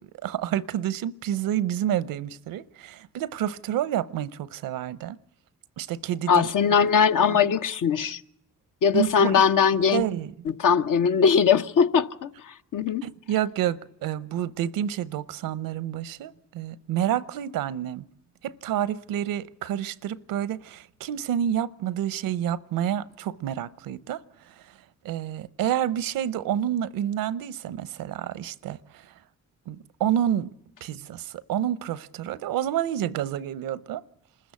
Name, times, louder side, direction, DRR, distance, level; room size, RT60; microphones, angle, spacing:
voice 1, 0.2-5.2 5.8-6.5 7.3-7.4 8.9-9.4 9.9-10.3 13.0-18.0 18.4-24.2 25.0-29.0 29.7-30.5 30.8-34.0, right 11 dB, 85° right, 0.7 m, -29 dB
voice 2, 6.3-8.2 8.8-10.0 10.6-13.0, left 6 dB, 70° left, 1.0 m, -21 dB
26.0 x 14.0 x 8.3 m
supercardioid pair, 50°, 33 cm